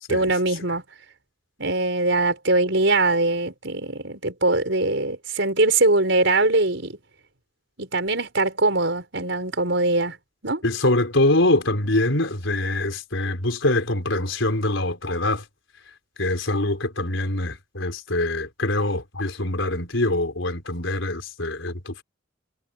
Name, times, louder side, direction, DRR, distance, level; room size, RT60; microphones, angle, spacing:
voice 1, 0.1-0.8 1.6-7.0 7.8-10.2 10.4-10.6, right 2 dB, 65° right, 5.1 m, -22 dB
voice 2, 10.6-15.4 16.2-22.0, left 2 dB, 80° left, 4.2 m, -24 dB
head